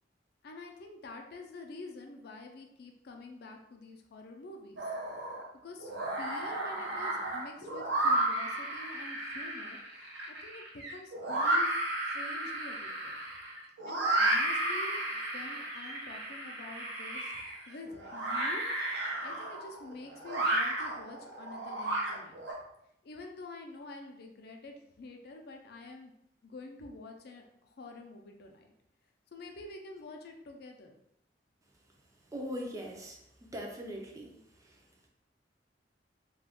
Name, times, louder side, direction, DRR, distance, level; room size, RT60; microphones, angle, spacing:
voice 1, 0.4-4.9 5.6-10.2 10.4-10.6 10.9-11.7 12.0-13.2 13.8-17.3 17.7-19.0 19.2-22.4 23.0-26.1 26.4-28.7 29.3-30.9, left 2 dB, 60° left, 3 dB, 0.4 m, -47 dB
sound 1, 4.8-5.4 5.8-22.5, right 1 dB, 75° right, 0.7 m, -33 dB
voice 2, 32.3-33.2 33.5-34.3 34.6-34.8, equal, 20° right, 0 dB, 0.4 m, -40 dB
2.4 x 2.2 x 3.4 m, 0.79 s
head